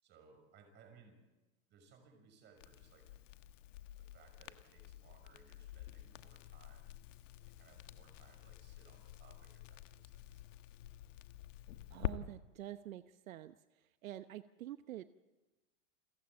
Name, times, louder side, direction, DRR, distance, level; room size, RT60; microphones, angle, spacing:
voice 1, 0.0-1.2 1.7-3.1 4.0-7.0 7.4-10.4, right 5 dB, 25° right, 5 dB, 6.2 m, -64 dB
Crackle, 2.6-12.1, left 14 dB, 65° left, 1.4 m, -48 dB
voice 2, 11.9-13.6 14.0-15.0, right 13 dB, 75° right, 11 dB, 1.0 m, -47 dB
29.0 x 15.0 x 8.8 m, 1.1 s
supercardioid pair, 155°, 41 cm